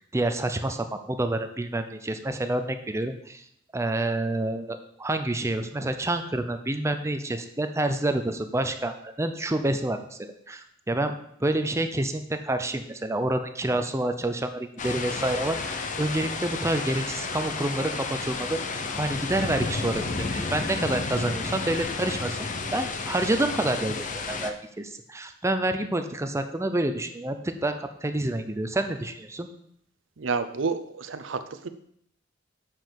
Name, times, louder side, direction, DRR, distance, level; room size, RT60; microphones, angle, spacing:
voice 1, 0.0-3.4 3.7-11.1 11.4-22.5 22.7-29.5, right 1 dB, 15° right, 8 dB, 0.6 m, -28 dB
sound 1, 14.8-24.5, left 4 dB, 40° left, 0.7 m, -32 dB
voice 2, 30.2-31.4, right 4 dB, 80° right, 11 dB, 0.7 m, -29 dB
7.4 x 5.1 x 5.9 m, 0.69 s
head